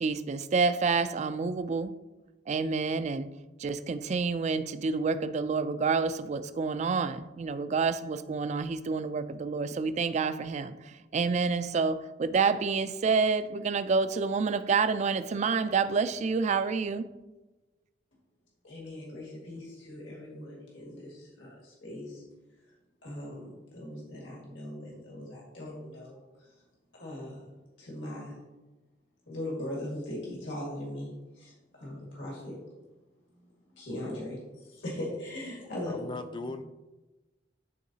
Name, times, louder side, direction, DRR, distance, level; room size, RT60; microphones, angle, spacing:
voice 1, 0.0-1.9 2.5-3.3 3.6-17.1, right 4 dB, 40° right, 0.3 m, -28 dB
voice 2, 18.6-22.2 23.0-26.5 26.9-27.5 27.8-28.4 29.3-32.6 33.8-36.1, left 1 dB, 80° left, 1.9 m, -40 dB
voice 3, 35.9-36.6, left 2 dB, 25° left, 0.4 m, -38 dB
11.0 x 3.8 x 2.8 m
head